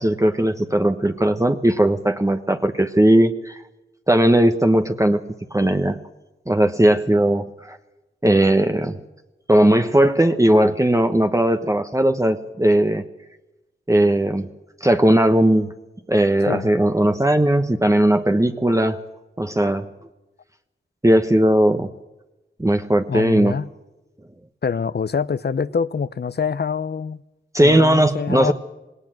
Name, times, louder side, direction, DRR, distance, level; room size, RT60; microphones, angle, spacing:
voice 1, 0.0-3.6 4.1-5.2 5.5-6.0 6.5-7.8 8.2-9.0 9.5-13.0 13.9-14.5 14.8-15.7 16.1-19.0 19.4-19.9 21.0-21.9 22.6-23.5 27.5-28.5, right 1 dB, 15° right, 6 dB, 1.2 m, -18 dB
voice 2, 23.1-23.7 24.6-27.2 27.6-28.5, left 6 dB, 55° left, 18 dB, 0.8 m, -25 dB
19.0 x 18.0 x 7.6 m, 1.0 s
cardioid pair, 50°, 21 cm